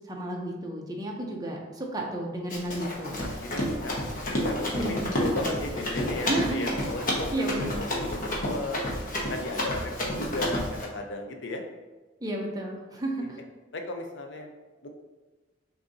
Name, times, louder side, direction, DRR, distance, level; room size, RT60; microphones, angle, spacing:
voice 1, 0.1-3.2 4.7-5.5 6.2-6.8 7.3-7.7 12.2-13.4, right 1 dB, 20° right, 0 dB, 0.6 m, -32 dB
Run, 2.5-10.8, left 1 dB, 50° left, 0.9 m, -30 dB
voice 2, 3.2-4.0 4.3-8.2 8.5-8.8 9.3-11.6 13.2-13.3 13.7-14.5 14.8-14.9, left 2 dB, 80° left, 4 dB, 0.6 m, -35 dB
6.1 x 2.7 x 2.6 m, 1.2 s
head